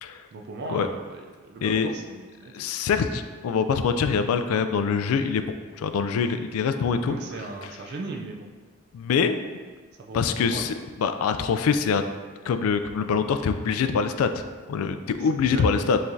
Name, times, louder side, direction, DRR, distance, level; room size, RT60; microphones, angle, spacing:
voice 1, 0.3-2.6 7.1-8.5 10.0-10.6 15.2-15.7, right 3 dB, 50° right, 1 dB, 0.4 m, -37 dB
voice 2, 1.6-1.9 2.5-5.5 5.8-7.2 8.9-9.4 10.1-12.0 12.5-14.4 14.7-16.0, left 6 dB, 80° left, 9 dB, 0.3 m, -24 dB
5.6 x 3.2 x 2.6 m, 1.4 s
head